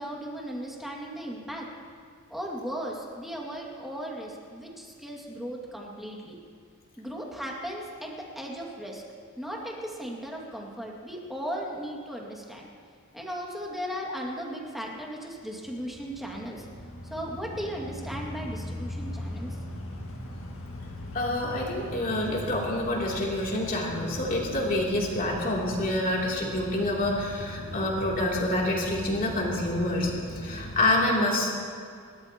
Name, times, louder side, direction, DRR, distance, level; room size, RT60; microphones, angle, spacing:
voice 1, 0.0-1.7 2.3-6.4 7.0-9.0 9.4-12.7 13.1-16.7 17.1-19.6, equal, ahead, -2 dB, 2.1 m, -36 dB
sound 1, 15.6-30.9, left 1 dB, 60° left, 1.9 m, -39 dB
voice 2, 21.1-31.5, left 1 dB, 40° left, -3 dB, 3.0 m, -27 dB
28.5 x 13.0 x 3.0 m, 2.2 s
head